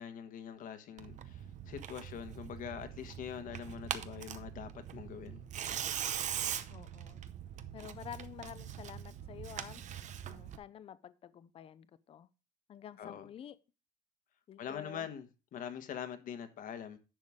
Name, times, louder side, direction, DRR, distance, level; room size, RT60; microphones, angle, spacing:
voice 1, 0.0-5.4 13.0-13.3 14.6-17.0, left 8 dB, 45° left, 1.3 m, -44 dB
Tearing, 1.0-10.6, right 10 dB, 40° right, 0.7 m, -42 dB
voice 2, 6.7-7.2 7.7-9.8 10.2-12.3 12.7-13.6 14.5-15.1, left 10 dB, 30° left, 0.6 m, -49 dB
10.5 x 7.0 x 3.6 m
cardioid pair, 165°, 19 cm